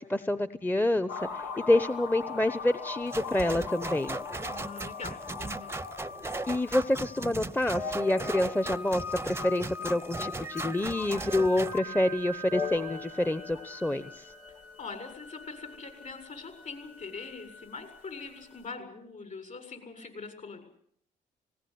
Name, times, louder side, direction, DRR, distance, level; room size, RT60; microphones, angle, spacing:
voice 1, 0.0-4.2 6.5-14.3, left 1 dB, 10° left, 12 dB, 1.0 m, -28 dB
sound 1, 1.1-18.3 18.5-18.6, left 4 dB, 85° left, 3.9 m, -40 dB
sound 2, 3.1-11.8, right 3 dB, 15° right, 0.8 m, -38 dB
voice 2, 4.4-5.8 14.5-20.6, left 4 dB, 45° left, 7 dB, 7.3 m, -43 dB
19.0 x 18.5 x 9.7 m, 0.65 s
supercardioid pair, 60°, 18 cm